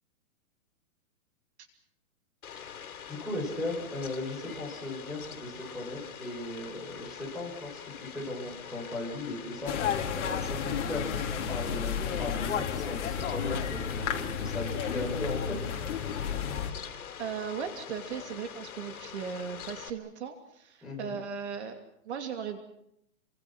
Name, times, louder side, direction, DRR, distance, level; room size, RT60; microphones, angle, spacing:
Fowl, 2.4-19.9, left 8 dB, 80° left, 3.7 m, -44 dB
voice 1, 3.1-15.6 20.8-21.2, left 2 dB, ahead, -2 dB, 6.5 m, -37 dB
sound 1, 9.7-16.7, left 8 dB, 55° left, 3.2 m, -32 dB
voice 2, 16.8-21.8 22.1-22.6, right 7 dB, 50° right, 6 dB, 2.8 m, -37 dB
29.0 x 25.0 x 6.1 m, 0.75 s
hypercardioid pair, 170°, 43 cm